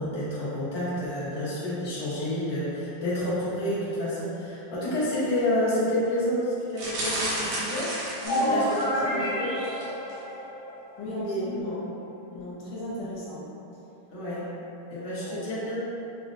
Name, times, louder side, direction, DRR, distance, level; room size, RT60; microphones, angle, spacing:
voice 1, 0.0-8.0 8.4-9.6 11.0-11.5 14.1-14.5 14.9-15.8, left 1 dB, 50° left, -11 dB, 0.4 m, -29 dB
sound 1, 6.7-9.0 9.6-9.8 10.1-10.2, right 1 dB, 70° right, 1.5 m, -32 dB
voice 2, 8.2-9.2 11.0-11.9 12.3-13.5 15.1-15.5, equal, 75° left, -7 dB, 1.5 m, -35 dB
sound 2, 8.2-11.0, equal, 25° right, 0.8 m, -29 dB
5.6 x 2.1 x 2.6 m, 2.9 s
omnidirectional pair, 2.4 m